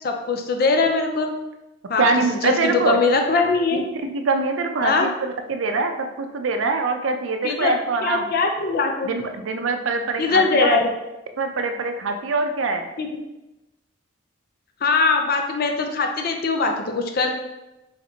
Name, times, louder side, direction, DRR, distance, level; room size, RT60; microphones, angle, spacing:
voice 1, 0.0-1.3 1.9-2.1 2.4-3.8 4.8-5.1 7.4-7.7 8.0-9.1 10.2-10.9 13.0-13.1 14.8-17.3, left 4 dB, 50° left, 4 dB, 0.5 m, -21 dB
voice 2, 2.0-3.0 4.0-8.3 9.0-10.8 11.4-12.9, right 3 dB, 75° right, 6 dB, 0.5 m, -24 dB
4.2 x 3.2 x 2.8 m, 0.98 s
head